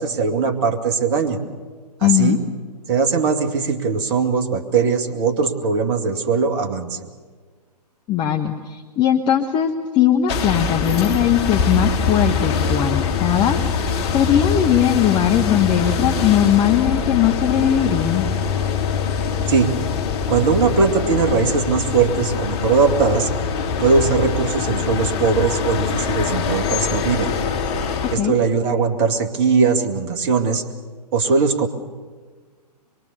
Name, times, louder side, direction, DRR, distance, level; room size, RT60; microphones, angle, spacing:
voice 1, 0.0-1.4 2.0-2.4 2.9-7.0 19.5-19.7 20.3-23.3 23.8-27.3 28.1-30.6 31.1-31.7, right 5 dB, 35° right, 5 dB, 2.3 m, -20 dB
voice 2, 2.0-2.4 8.1-18.3 28.0-28.4, left 10 dB, 20° left, 4 dB, 1.1 m, -19 dB
sound 1, 10.3-28.2, left 6 dB, 40° left, 2.9 m, -23 dB
24.5 x 23.0 x 7.0 m, 1.5 s
figure-of-eight pair, 125°, 21 cm